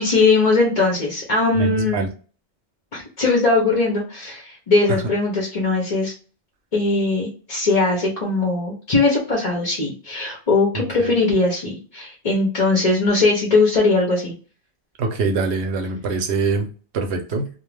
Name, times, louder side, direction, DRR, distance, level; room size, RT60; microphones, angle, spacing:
voice 1, 0.0-2.1 2.9-6.1 6.7-14.3, left 3 dB, 40° left, -2 dB, 0.8 m, -20 dB
voice 2, 1.5-2.1 10.7-11.1 15.0-16.7 16.9-17.5, right 4 dB, 75° right, 4 dB, 0.9 m, -24 dB
2.4 x 2.2 x 3.2 m, 0.38 s
omnidirectional pair, 1.2 m